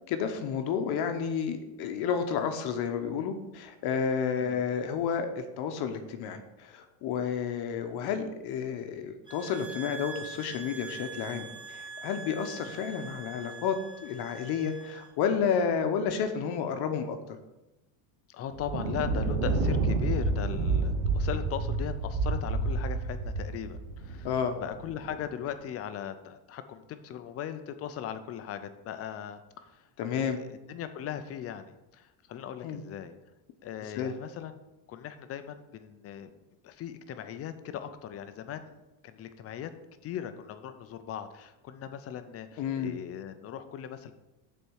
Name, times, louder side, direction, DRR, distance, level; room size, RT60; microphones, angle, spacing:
voice 1, 0.1-13.8 14.0-17.2 24.2-24.6 30.0-30.4 32.6-32.8 34.0-34.1 42.6-43.0, left 7 dB, 50° left, 7 dB, 0.9 m, -31 dB
sound 1, 9.3-15.1, right 4 dB, 10° right, 1.1 m, -44 dB
voice 2, 18.3-24.3 24.6-29.9 30.1-33.1 33.6-34.6 34.9-36.3 36.6-39.7 40.0-44.1, left 9 dB, 30° left, 10 dB, 0.4 m, -39 dB
Thunder, 18.5-25.2, right 3 dB, 85° right, 1.3 m, -29 dB
6.6 x 4.3 x 6.3 m, 0.97 s
cardioid pair, 140°, 49 cm